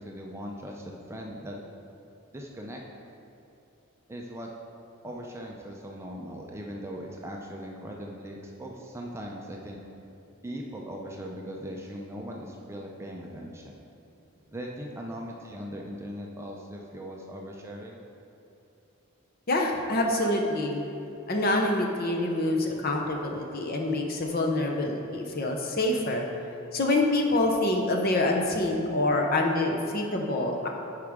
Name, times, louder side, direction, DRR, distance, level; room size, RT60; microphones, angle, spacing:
voice 1, 0.0-1.6 2.3-2.8 4.1-4.5 5.0-9.8 10.4-13.7 14.5-18.0, equal, 10° right, -1 dB, 0.5 m, -39 dB
voice 2, 19.5-20.8 21.3-26.3 26.7-30.7, left 2 dB, 45° left, 1 dB, 0.8 m, -26 dB
11.0 x 4.9 x 3.6 m, 2.9 s
head